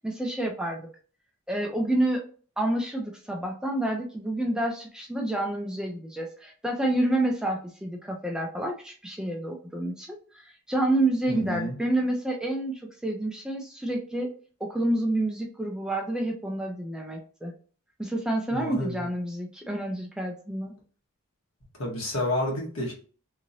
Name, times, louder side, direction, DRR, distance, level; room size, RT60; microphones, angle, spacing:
voice 1, 0.0-0.8 1.5-2.2 2.6-14.3 14.6-17.5 18.0-20.7, right 1 dB, 5° right, 1 dB, 0.4 m, -29 dB
voice 2, 11.3-11.7 18.5-19.1 21.8-22.9, left 1 dB, 75° left, -3 dB, 1.5 m, -30 dB
3.0 x 2.8 x 2.6 m, 0.40 s
head